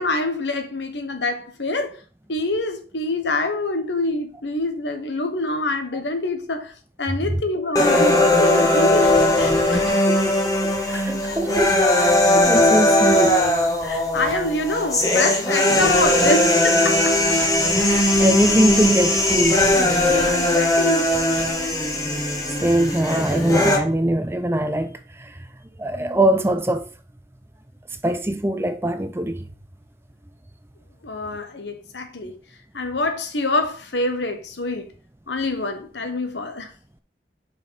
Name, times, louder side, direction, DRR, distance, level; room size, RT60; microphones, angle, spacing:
voice 1, 0.0-2.0 2.3-6.7 7.0-9.9 10.9-11.4 13.8-17.2 20.1-21.3 31.0-32.3 32.7-34.9 35.3-36.7, left 2 dB, 80° left, 1.2 m, -26 dB
sound 1, 7.8-23.8, left 1 dB, 20° left, 1.4 m, -19 dB
sound 2, 8.9-9.9 11.3-11.6 12.3-12.4 13.8-13.9 14.1-14.3 15.8-16.3 17.1-20.3 21.1-21.5, equal, 5° left, 2.7 m, -35 dB
voice 2, 10.1-13.4 17.9-19.6 22.6-25.3 25.8-26.8 28.0-29.4, right 1 dB, 15° right, 0.5 m, -22 dB
6.8 x 5.1 x 4.2 m
head